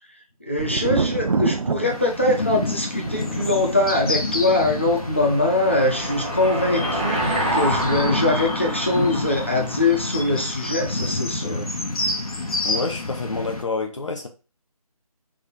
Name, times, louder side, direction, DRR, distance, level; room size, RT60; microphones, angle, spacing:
voice 1, 0.4-11.7, left 2 dB, 20° left, 0.5 m, -22 dB
Thunder, 0.6-10.2 10.5-11.2, right 4 dB, 60° right, 0.4 m, -31 dB
sound 1, 1.8-13.6, left 2 dB, 75° left, 1.2 m, -29 dB
Car passing by / Engine, 4.0-10.9, right 1 dB, 15° right, 0.7 m, -28 dB
voice 2, 12.6-14.3, left 4 dB, 55° left, 0.8 m, -28 dB
3.5 x 3.2 x 4.1 m
figure-of-eight pair, 175°, 19 cm